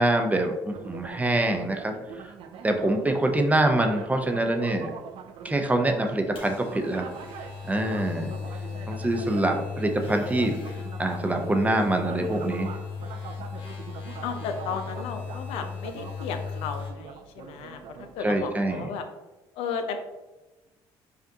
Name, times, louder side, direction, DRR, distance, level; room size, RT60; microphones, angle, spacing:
voice 1, 0.0-1.9 2.2-2.3 2.6-4.9 5.4-7.1 7.6-8.3 8.9-10.6 11.0-12.8 18.2-18.9, right 1 dB, 15° right, 4 dB, 0.5 m, -25 dB
sound 1, 0.7-18.8, right 7 dB, 65° right, 0.4 m, -43 dB
voice 2, 2.7-3.2 8.2-9.1 14.2-19.1 19.6-20.0, left 6 dB, 80° left, 7 dB, 0.5 m, -35 dB
sound 2, 6.1-16.9, left 6 dB, 60° left, 1.1 m, -37 dB
5.1 x 2.5 x 2.7 m, 1.1 s
supercardioid pair, 80°, 10 cm